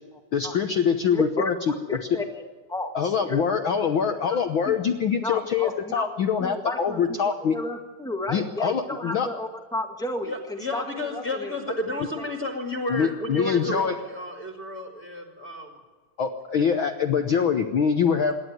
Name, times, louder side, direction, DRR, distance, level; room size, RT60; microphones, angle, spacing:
voice 1, 0.3-1.5 2.1-2.2 2.9-7.6 8.3-9.3 12.9-13.9 16.2-18.3, left 7 dB, 70° left, 6 dB, 1.2 m, -24 dB
voice 2, 1.1-2.4 2.7-3.4 4.3-4.4 4.6-4.7 5.2-6.1 6.4-11.6, left 1 dB, ahead, 3 dB, 0.9 m, -33 dB
voice 3, 10.2-15.8, left 1 dB, 30° left, 1 dB, 2.5 m, -32 dB
27.0 x 12.0 x 9.4 m, 1.4 s
omnidirectional pair, 3.6 m